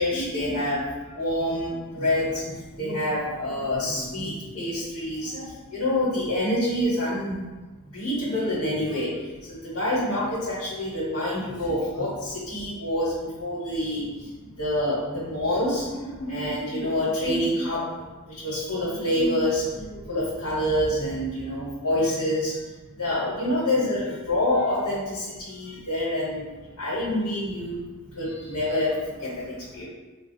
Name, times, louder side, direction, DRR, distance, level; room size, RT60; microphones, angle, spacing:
voice 1, 0.0-7.4 7.9-29.8, left 1 dB, 75° left, -9 dB, 1.1 m, -27 dB
4.1 x 2.2 x 2.7 m, 1.2 s
head